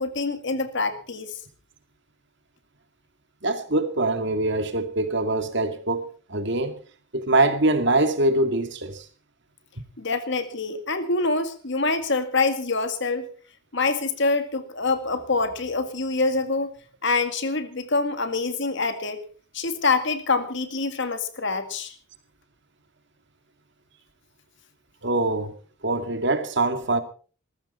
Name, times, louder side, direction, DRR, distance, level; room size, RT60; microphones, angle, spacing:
voice 1, 0.0-1.3 10.0-13.3 13.7-16.7 17.0-19.2 19.5-21.9, left 3 dB, 60° left, 2.0 m, -25 dB
voice 2, 3.4-6.7 7.1-9.0 9.8-9.9 25.0-25.5 25.8-27.0, right 2 dB, 60° right, 2.3 m, -23 dB
19.5 x 14.5 x 4.3 m
head